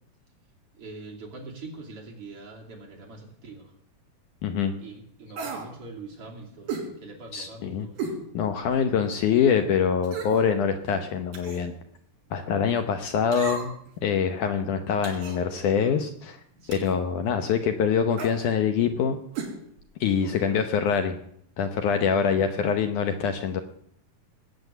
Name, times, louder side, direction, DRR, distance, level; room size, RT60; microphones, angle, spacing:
voice 1, 0.7-3.7 4.8-8.0 16.6-17.0 20.1-20.7 22.1-22.4, right 3 dB, 40° right, -1 dB, 3.5 m, -43 dB
voice 2, 4.4-4.8 7.3-7.9 8.3-11.7 12.3-13.7 14.0-16.4 16.7-19.2 20.0-21.2 21.6-23.6, left 7 dB, 70° left, 8 dB, 2.2 m, -24 dB
sound 1, 5.3-5.7 6.7-6.9 8.0-8.2 8.7-8.8 10.0-10.4 11.3-11.7 13.3-13.9 15.0-15.4 16.7-17.0 18.1-18.4 19.3-19.5 19.8-19.9, right 5 dB, 75° right, 5.4 m, -34 dB
18.5 x 8.9 x 8.2 m, 0.69 s
omnidirectional pair, 4.2 m